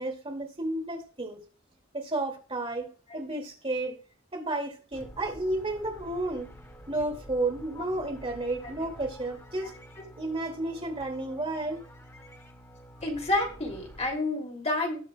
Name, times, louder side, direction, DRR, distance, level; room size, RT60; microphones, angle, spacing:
voice 1, 0.0-1.4 1.9-4.0 4.3-6.5 6.9-9.7 10.2-11.8, right 2 dB, 25° right, 2.7 m, -32 dB
Space Ambience, 4.9-14.1, equal, 15° left, 2.3 m, -49 dB
voice 2, 13.0-15.0, left 2 dB, 30° left, 3.1 m, -29 dB
19.5 x 6.6 x 2.4 m
head